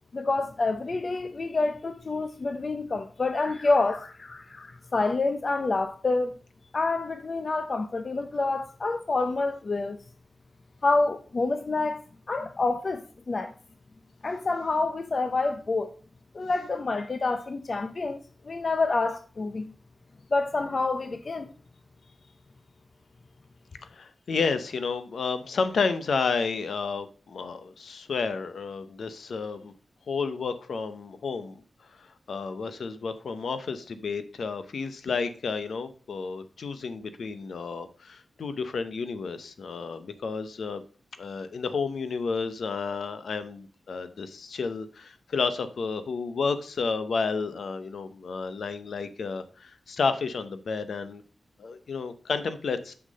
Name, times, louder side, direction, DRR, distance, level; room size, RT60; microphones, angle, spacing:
voice 1, 0.1-6.3 6.7-10.0 10.8-13.5 14.2-15.9 16.3-18.2 18.4-19.7 20.3-21.5, left 3 dB, 40° left, 0.5 m, -27 dB
voice 2, 23.9-29.7 30.1-31.6 32.3-40.8 41.2-51.2 51.6-52.9, left 5 dB, 85° left, 0.7 m, -31 dB
6.4 x 5.9 x 5.2 m
wide cardioid pair, 150°, 0 cm